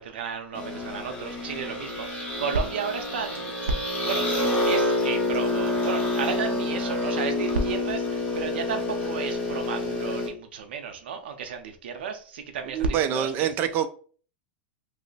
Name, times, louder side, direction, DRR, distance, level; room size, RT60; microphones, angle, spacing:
voice 1, 0.0-3.6 4.0-4.3 4.7-13.5, right 5 dB, 90° right, 0.6 m, -32 dB
sound 1, 0.5-10.3, left 2 dB, 30° left, 1.1 m, -28 dB
voice 2, 12.7-13.9, right 9 dB, 35° right, 0.4 m, -25 dB
3.0 x 2.0 x 3.9 m
supercardioid pair, 140°, 6 cm